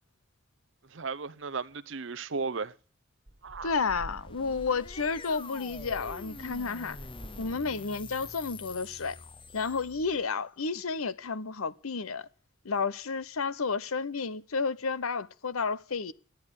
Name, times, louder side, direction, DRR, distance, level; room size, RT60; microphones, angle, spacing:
voice 1, 0.9-2.7 3.4-3.7, right 4 dB, 60° right, 0.7 m, -35 dB
sound 1, 3.3-8.7, right 1 dB, 40° right, 1.5 m, -48 dB
voice 2, 3.6-7.0 7.4-9.2 9.5-12.3 12.6-16.1, left 4 dB, 85° left, 0.8 m, -31 dB
sound 2, 4.0-10.3, left 4 dB, 25° left, 0.7 m, -46 dB
13.0 x 10.5 x 8.1 m
head